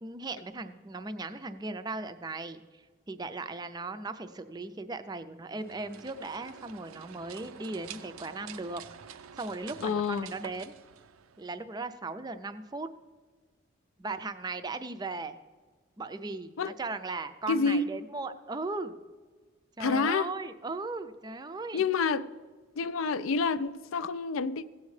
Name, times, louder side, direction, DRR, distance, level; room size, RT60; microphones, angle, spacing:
voice 1, 0.0-8.8 9.1-10.7 11.4-12.9 14.0-15.4 16.0-19.0 19.8-21.8, right 3 dB, 20° right, 0.4 m, -37 dB
sound 1, 5.5-11.7, right 8 dB, 90° right, 0.4 m, -48 dB
voice 2, 9.8-10.3 16.6-16.7 17.5-17.9 19.8-20.3 21.7-22.3 22.8-24.7, left 5 dB, 75° left, 0.4 m, -28 dB
16.5 x 8.2 x 3.2 m
head